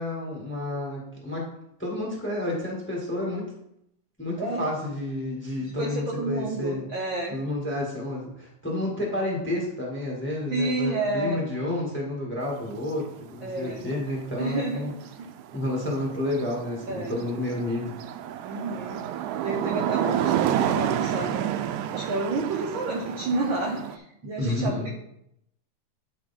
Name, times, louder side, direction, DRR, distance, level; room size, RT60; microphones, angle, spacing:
voice 1, 0.0-1.5 1.8-3.5 4.2-6.8 7.3-13.0 13.3-14.9 15.5-17.9 24.4-24.9, left 1 dB, 5° left, -2 dB, 1.1 m, -30 dB
voice 2, 5.6-7.4 10.5-11.4 13.4-13.9 14.4-14.9 16.9-17.2 18.4-19.0 19.4-24.9, right 2 dB, 75° right, 0 dB, 1.1 m, -30 dB
sound 1, 12.7-24.0, right 10 dB, 90° right, 2.0 m, -30 dB
9.4 x 4.5 x 4.3 m, 0.78 s
omnidirectional pair, 3.4 m